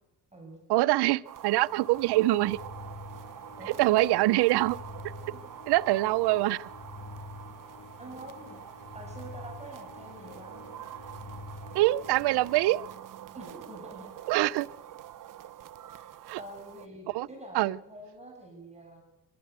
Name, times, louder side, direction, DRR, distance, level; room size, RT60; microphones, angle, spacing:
voice 1, 0.7-2.6 3.7-4.8 5.7-6.7 11.7-12.9 14.3-14.7 16.2-16.4 17.1-17.3 17.5-17.8, right 17 dB, 75° right, 0.8 m, -24 dB
sound 1, 1.2-16.9, right 12 dB, 50° right, 1.3 m, -46 dB
sound 2, 1.6-13.4, left 3 dB, 50° left, 3.1 m, -47 dB
voice 2, 3.6-4.2 5.2-5.5 8.0-8.6 8.9-10.6 13.3-14.2 16.4-19.0, right 1 dB, 15° right, 7.3 m, -46 dB
24.5 x 15.0 x 8.2 m
supercardioid pair, 80°, 40 cm